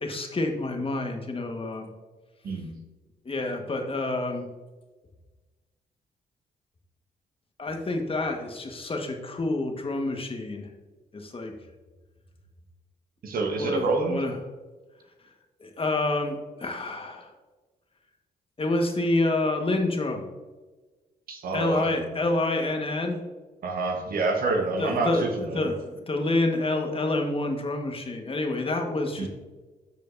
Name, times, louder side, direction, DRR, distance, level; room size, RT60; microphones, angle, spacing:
voice 1, 0.0-1.9 3.2-4.5 7.6-10.7 11.1-11.5 13.6-14.3 15.6-17.3 18.6-20.2 21.5-23.2 24.8-29.3, left 2 dB, 35° left, 3 dB, 1.5 m, -28 dB
voice 2, 13.2-14.2 21.3-22.2 23.6-25.7 29.2-29.3, right 3 dB, 65° right, 3 dB, 1.3 m, -27 dB
14.0 x 5.0 x 2.7 m, 1.3 s
supercardioid pair, 55°, 16 cm